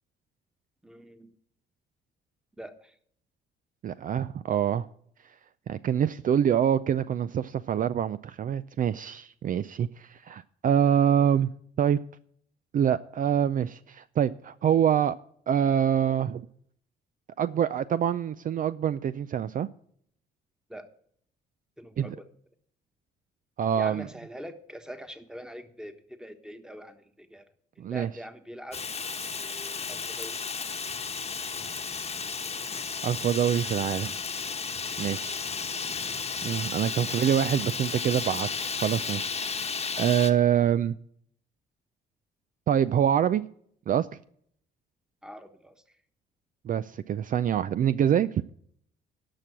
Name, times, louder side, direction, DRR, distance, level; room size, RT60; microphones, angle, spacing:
voice 1, 0.8-1.3 2.6-2.9 20.7-20.9 21.8-22.3 23.7-27.4 27.8-28.8 29.4-30.7 45.2-45.7, equal, 5° right, 1.3 m, -44 dB
voice 2, 3.8-4.9 5.7-11.5 11.8-12.0 12.7-15.2 15.5-16.5 17.4-19.7 22.0-22.1 23.6-24.1 27.8-28.1 33.0-34.1 35.0-35.4 36.4-39.6 40.0-40.9 42.7-43.4 43.9-44.1 46.7-48.3, right 9 dB, 45° right, 0.4 m, -25 dB
Fire, 28.7-40.3, left 5 dB, 35° left, 1.1 m, -33 dB
11.5 x 6.1 x 8.4 m
supercardioid pair, 75°, 19 cm